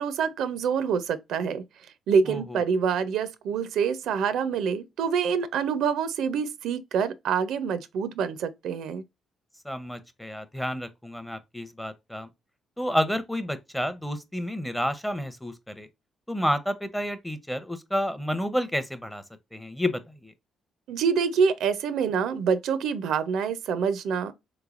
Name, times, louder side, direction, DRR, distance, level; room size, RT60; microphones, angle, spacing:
voice 1, 0.0-1.6 2.1-9.0 20.9-24.3, right 6 dB, 80° right, 0.4 m, -26 dB
voice 2, 2.3-2.6 9.6-12.3 12.8-15.9 16.3-19.2 19.5-20.3, equal, 5° left, 0.6 m, -30 dB
3.4 x 3.1 x 2.4 m
cardioid pair, 90°, 0 cm